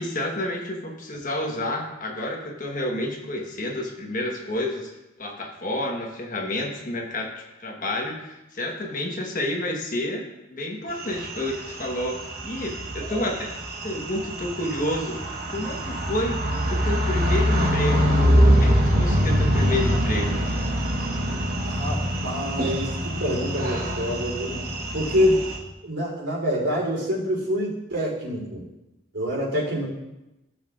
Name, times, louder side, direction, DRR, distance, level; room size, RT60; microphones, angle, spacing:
voice 1, 0.0-4.9 5.2-7.3 7.6-13.5 13.8-16.4 16.7-18.1 18.5-20.4, left 1 dB, 45° left, 1 dB, 1.3 m, -30 dB
sound 1, 11.0-25.6, equal, 50° right, 1.2 m, -24 dB
voice 2, 13.0-13.3 21.7-24.6 24.9-25.4 25.8-28.6 29.1-29.9, equal, 85° right, -3 dB, 3.5 m, -26 dB
14.5 x 6.8 x 2.5 m, 0.96 s
head